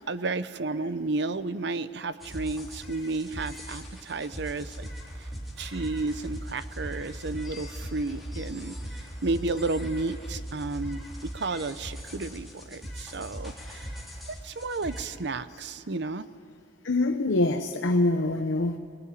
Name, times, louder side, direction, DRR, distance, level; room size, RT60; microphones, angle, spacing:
voice 1, 0.1-4.9 5.6-8.8 9.2-13.9 14.4-16.3, right 3 dB, 65° right, 13 dB, 0.8 m, -32 dB
sound 1, 2.2-15.0, equal, ahead, 3.6 m, -39 dB
voice 2, 16.8-18.8, left 2 dB, 90° left, 6 dB, 0.9 m, -24 dB
20.5 x 20.0 x 9.8 m, 2.5 s
head